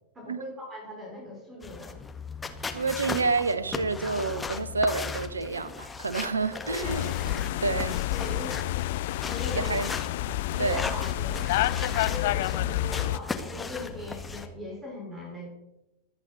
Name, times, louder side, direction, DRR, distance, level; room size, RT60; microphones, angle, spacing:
voice 1, 0.1-2.0 6.5-7.3 8.1-8.7 9.2-9.8 10.5-15.5, left 1 dB, 15° right, 4.4 m, -40 dB
sound 1, 1.6-14.5, left 4 dB, 10° left, 1.5 m, -37 dB
voice 2, 2.7-8.0 9.5-9.9 10.6-10.9 12.6-12.7, right 3 dB, 75° right, 0.9 m, -29 dB
sound 2, 6.8-13.2, left 15 dB, 50° left, 0.4 m, -29 dB
25.0 x 9.0 x 4.0 m
figure-of-eight pair, 90°, 0 cm